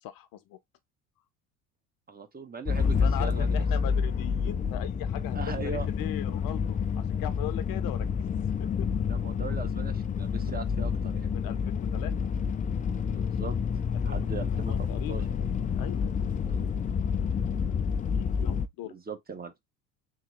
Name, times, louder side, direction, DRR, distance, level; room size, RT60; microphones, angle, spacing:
voice 1, 0.0-0.6 3.0-8.9 11.3-12.1 14.1-14.3 14.7-15.3 15.8-16.1 18.1-19.0, left 12 dB, 55° left, 0.8 m, -40 dB
voice 2, 2.1-3.6 5.3-5.9 9.0-11.3 13.1-13.6 14.0-15.2 16.5-16.7 18.8-19.5, right 4 dB, 20° right, 1.0 m, -39 dB
sound 1, 2.7-18.7, left 6 dB, 20° left, 0.4 m, -29 dB
3.9 x 3.1 x 3.2 m
hypercardioid pair, 70°, 42 cm